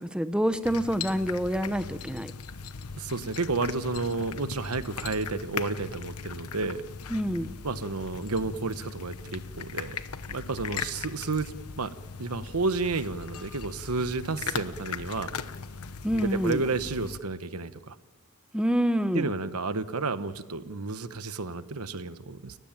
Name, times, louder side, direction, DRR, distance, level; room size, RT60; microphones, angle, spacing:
voice 1, 0.0-2.3 7.1-7.5 16.0-16.6 18.5-19.3, equal, 5° right, 11 dB, 0.8 m, -27 dB
sound 1, 0.6-17.2, left 5 dB, 90° left, 1.0 m, -39 dB
voice 2, 2.9-6.8 7.6-10.0 10.3-11.9 12.2-15.4 16.1-18.0 19.1-22.6, right 3 dB, 80° right, 12 dB, 1.1 m, -31 dB
30.0 x 15.0 x 8.9 m, 1.3 s
head